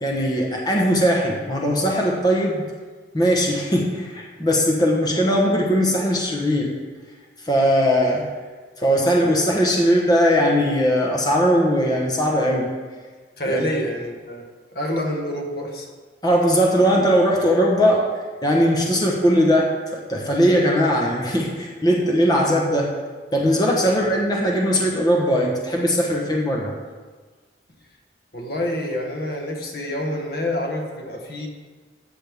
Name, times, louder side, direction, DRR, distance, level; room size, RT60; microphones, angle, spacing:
voice 1, 0.0-2.6 3.1-6.7 7.4-8.3 8.8-12.7 13.5-13.6 16.2-18.1 18.4-22.9 23.3-26.7, equal, 20° left, -1 dB, 1.1 m, -19 dB
voice 2, 13.4-14.5 14.7-15.9 23.8-23.9 28.3-31.5, left 1 dB, 55° left, 1 dB, 1.3 m, -27 dB
13.5 x 7.7 x 3.6 m, 1.4 s
head